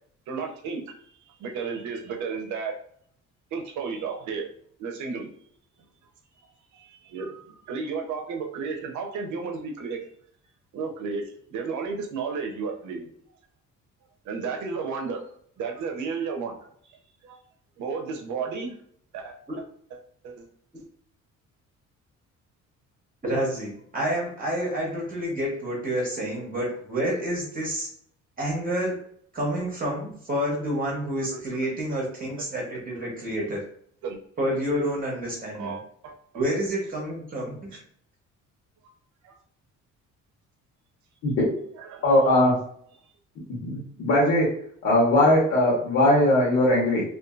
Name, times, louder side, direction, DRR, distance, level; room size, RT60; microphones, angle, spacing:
voice 1, 0.3-0.8 1.4-2.8 3.5-4.5 4.8-5.3 6.7-10.0 10.7-13.1 14.2-15.2 15.6-16.6 17.2-17.4 17.8-18.8 19.1-19.4 19.9-20.0 20.2-20.5 31.3-31.6 32.4-32.5 32.9-33.0 34.0-34.2 35.5-36.1 37.7-37.8 39.2-39.3 41.8-42.0, right 5 dB, 70° right, 2 dB, 0.7 m, -33 dB
voice 2, 23.2-27.9 28.4-29.0 29.3-33.6 34.4-35.8 36.3-37.8, equal, 30° right, -2 dB, 0.9 m, -29 dB
voice 3, 42.0-42.5 43.6-44.5 44.8-47.0, left 1 dB, 65° left, -6 dB, 1.0 m, -20 dB
2.6 x 2.4 x 2.4 m, 0.62 s
cardioid pair, 115°, 30 cm